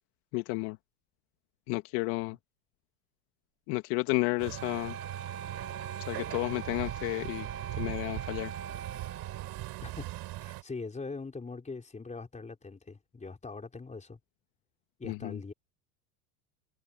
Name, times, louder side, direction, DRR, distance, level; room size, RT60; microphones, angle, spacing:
voice 1, 0.3-0.8 1.7-2.4 3.7-4.9 6.1-7.5 7.8-8.5 15.0-15.4, left 24 dB, 60° left, 1.7 m, -32 dB
Truck, 4.4-10.6, right 17 dB, 55° right, 7.6 m, -39 dB
Wind instrument woodwind instrument, 4.5-9.7, right 5 dB, 30° right, 2.0 m, -43 dB
voice 2, 9.8-10.1 10.4-14.2 15.0-15.5, left 4 dB, 15° left, 4.2 m, -42 dB
supercardioid pair, 105°, 47 cm